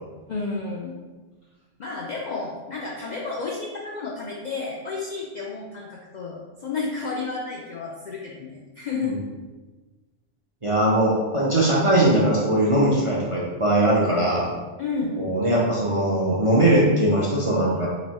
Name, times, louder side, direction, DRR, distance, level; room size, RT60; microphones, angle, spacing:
voice 1, 0.3-1.0 1.8-9.2 14.8-15.2, left 4 dB, 65° left, -3 dB, 0.4 m, -31 dB
voice 2, 10.6-14.5 15.2-17.9, right 1 dB, 40° right, -5 dB, 0.5 m, -20 dB
3.1 x 2.6 x 4.1 m, 1.3 s
omnidirectional pair, 1.2 m